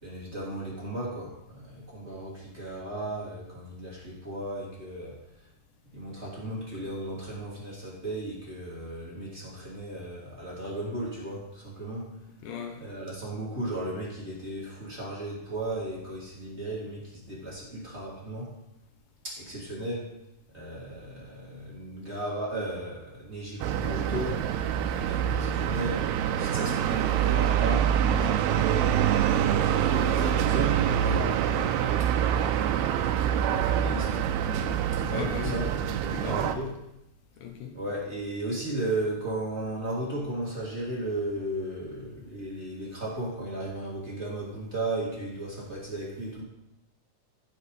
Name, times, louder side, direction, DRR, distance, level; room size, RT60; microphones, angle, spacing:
voice 1, 0.0-5.2 5.9-12.1 12.8-18.5 19.2-20.1 20.5-24.4 24.9-28.9 29.4-31.3 32.3-34.2 35.0-36.8 37.7-46.4, right 1 dB, 20° right, -6 dB, 2.6 m, -35 dB
voice 2, 12.4-12.8 17.3-17.5 34.7-35.6 36.1-36.6 37.4-37.7, left 8 dB, 70° left, 3 dB, 2.1 m, -38 dB
sound 1, 23.6-36.6, right 9 dB, 80° right, 2.4 m, -25 dB
15.0 x 7.3 x 4.2 m, 0.87 s
omnidirectional pair, 4.9 m